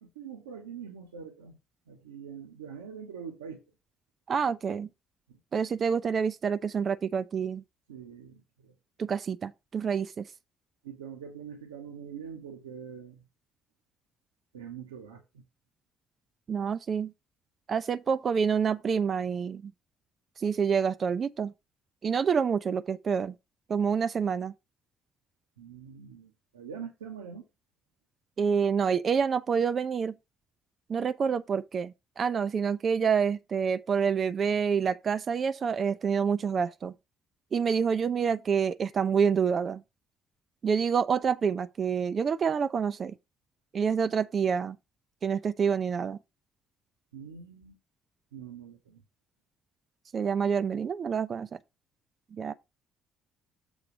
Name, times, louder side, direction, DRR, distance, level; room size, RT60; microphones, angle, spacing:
voice 1, 0.0-1.6 1.9-3.6 5.3-5.4 7.9-8.8 10.8-13.2 14.5-15.4 25.6-27.4 47.1-47.8 48.3-49.0, right 7 dB, 75° right, 0.8 m, -44 dB
voice 2, 4.3-4.9 5.5-7.6 9.0-10.3 16.5-17.1 17.7-19.7 20.4-21.5 22.0-23.3 23.7-24.5 28.4-30.1 30.9-36.9 37.5-39.8 40.6-43.2 43.7-44.8 45.2-46.2 50.1-51.5 52.3-52.5, right 6 dB, 40° right, 0.4 m, -27 dB
7.1 x 3.8 x 5.8 m
figure-of-eight pair, 50°, 0 cm